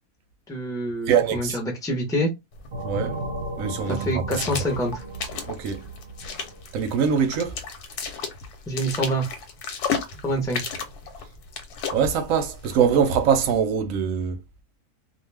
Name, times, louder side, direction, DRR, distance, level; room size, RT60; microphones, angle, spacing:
voice 1, 0.5-2.3 3.9-5.0 8.7-9.3 10.2-10.6, equal, 5° left, 0.4 m, -26 dB
voice 2, 1.1-1.6 2.8-3.1 3.6-4.0 5.5-5.8 6.7-7.5 11.9-14.4, right 7 dB, 70° right, 0.9 m, -22 dB
sound 1, 2.5-13.6, left 6 dB, 85° left, 1.2 m, -35 dB
sound 2, 2.7-7.1, right 2 dB, 40° right, 0.8 m, -35 dB
2.5 x 2.3 x 3.3 m
omnidirectional pair, 1.6 m